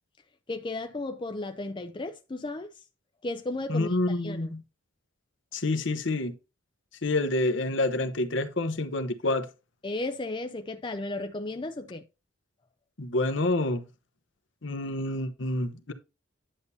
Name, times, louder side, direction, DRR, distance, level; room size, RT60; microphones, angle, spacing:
voice 1, 0.5-2.7 3.2-4.5 9.8-12.0, left 2 dB, 25° left, 0.5 m, -34 dB
voice 2, 3.7-4.6 5.5-6.3 7.0-9.4 13.0-13.8 14.6-15.9, left 2 dB, 65° left, 1.0 m, -28 dB
10.5 x 6.8 x 2.8 m
head